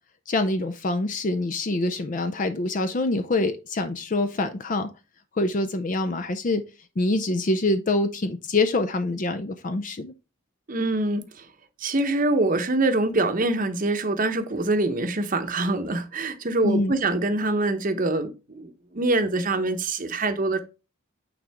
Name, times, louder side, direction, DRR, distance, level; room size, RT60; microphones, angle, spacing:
voice 1, 0.3-4.9 5.4-6.6 7.0-10.1 16.6-17.0, left 2 dB, 40° left, 0.5 m, -25 dB
voice 2, 10.7-11.5 11.8-20.6, right 2 dB, 40° right, 0.8 m, -24 dB
9.1 x 3.7 x 3.4 m
head